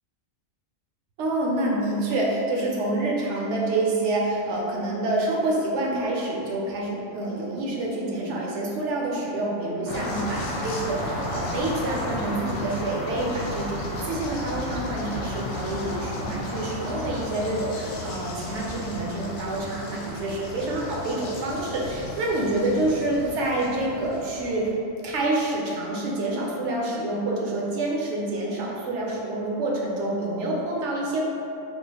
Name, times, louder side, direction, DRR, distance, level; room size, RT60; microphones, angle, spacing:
voice 1, 1.2-24.7 25.0-31.3, right 2 dB, 70° right, -3 dB, 0.8 m, -27 dB
sound 1, 9.9-24.7, left 1 dB, 75° left, 0.9 m, -33 dB
3.6 x 2.4 x 2.7 m, 2.6 s
omnidirectional pair, 1.4 m